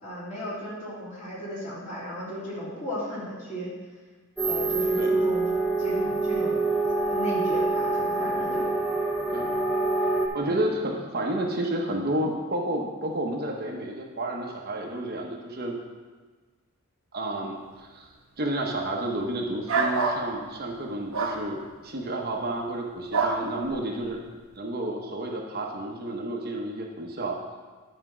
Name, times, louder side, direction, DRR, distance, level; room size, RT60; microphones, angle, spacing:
voice 1, 0.0-3.7 4.4-5.4 5.8-6.7 7.1-8.7 10.4-10.6, equal, 35° left, -7 dB, 2.9 m, -35 dB
sound 1, 4.4-10.3, right 2 dB, ahead, 0.8 m, -26 dB
voice 2, 10.3-15.8 17.1-18.1 18.4-24.2 24.6-27.4, right 1 dB, 45° right, 0 dB, 0.9 m, -31 dB
sound 2, 19.7-20.2 21.1-21.4 23.1-23.4, right 4 dB, 70° right, 1.1 m, -25 dB
9.9 x 4.4 x 6.0 m, 1.4 s
head